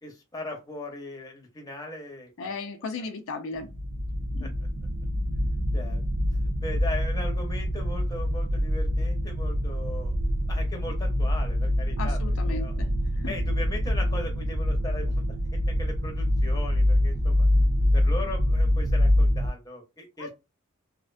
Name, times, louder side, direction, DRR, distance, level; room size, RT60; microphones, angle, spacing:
voice 1, 0.0-2.5 4.4-4.5 5.7-6.0 6.6-10.1 10.5-12.2 12.5-12.7 13.3-15.2 15.5-17.5 17.9-20.3, left 1 dB, 15° left, 0.7 m, -38 dB
voice 2, 2.4-3.7 4.3-4.5 12.0-12.9 13.1-13.3 20.2-20.3, left 3 dB, 70° left, 0.4 m, -35 dB
sound 1, 3.6-19.5, left 1 dB, 75° right, 0.6 m, -25 dB
2.4 x 2.1 x 2.4 m
head